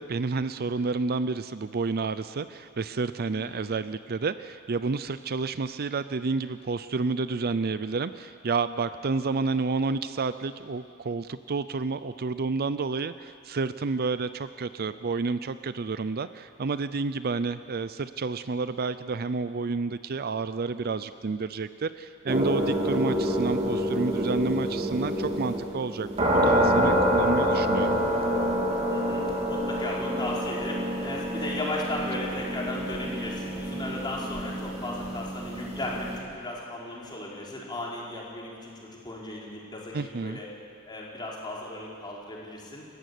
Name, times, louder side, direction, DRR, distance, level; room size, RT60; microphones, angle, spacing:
voice 1, 0.0-28.0 39.9-40.4, right 4 dB, 50° right, 13 dB, 0.5 m, -30 dB
sound 1, 22.3-36.2, equal, 30° right, 3.1 m, -27 dB
voice 2, 28.9-29.2 29.5-40.5 40.9-42.8, left 1 dB, 20° left, -4 dB, 4.6 m, -36 dB
29.5 x 14.5 x 8.4 m, 2.4 s
head